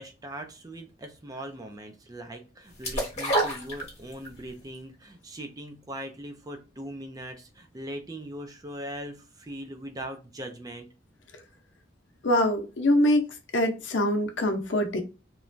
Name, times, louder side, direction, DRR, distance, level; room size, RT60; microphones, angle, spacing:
voice 1, 0.0-10.9, right 1 dB, 20° right, 0.5 m, -40 dB
sound 1, 2.8-4.4 4.7-4.8, right 1 dB, 35° left, 1.2 m, -27 dB
voice 2, 12.2-13.3 13.5-15.0, left 1 dB, 80° left, 0.7 m, -24 dB
3.1 x 2.2 x 2.5 m
head